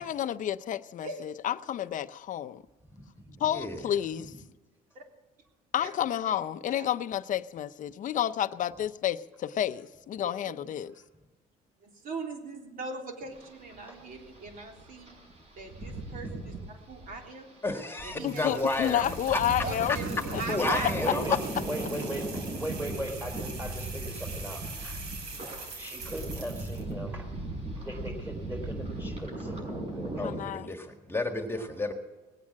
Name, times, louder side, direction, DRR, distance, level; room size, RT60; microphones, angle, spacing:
voice 1, 0.0-2.6 3.4-4.3 5.7-9.2 9.6-9.8 10.1-10.9 18.2-20.0 20.3-20.4 20.8-20.9 21.3-21.4 30.2-30.7, left 11 dB, 50° left, 12 dB, 0.6 m, -30 dB
voice 2, 2.9-3.4 13.9-14.0 20.6-21.4 21.6-22.3 22.6-25.0 25.7-27.3 27.8-30.3, right 1 dB, 10° right, 3 dB, 4.1 m, -39 dB
voice 3, 10.2-10.6 11.8-15.2 15.5-17.6 18.0-19.1 19.4-21.2 31.6-31.7, right 3 dB, 55° right, 2 dB, 3.5 m, -40 dB
sound 1, 13.3-30.4, right 2 dB, 40° right, 6.3 m, -38 dB
voice 4, 17.6-19.4 20.5-21.4 30.2-31.9, left 2 dB, 15° left, 5 dB, 1.7 m, -31 dB
sound 2, 18.2-26.9, right 4 dB, 80° right, 4.0 m, -44 dB
19.5 x 8.6 x 7.5 m, 1.2 s
cardioid pair, 110°, 17 cm